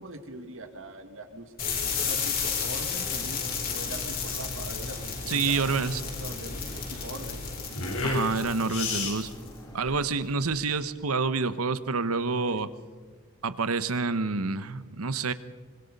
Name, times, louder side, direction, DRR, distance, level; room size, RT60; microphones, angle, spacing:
voice 1, 0.0-7.5 9.8-10.2 12.5-12.6, right 1 dB, 60° right, 7 dB, 2.1 m, -43 dB
sound 1, 1.6-9.5, left 6 dB, 40° left, 4.1 m, -33 dB
sound 2, 1.8-9.8, right 1 dB, 20° left, 3.0 m, -46 dB
sound 3, 2.7-10.7, left 3 dB, 80° left, 4.2 m, -35 dB
voice 2, 5.3-6.0 8.0-9.3 9.7-12.7 13.4-15.3, right 4 dB, 80° right, 13 dB, 1.0 m, -28 dB
25.0 x 24.5 x 5.4 m, 1.5 s
head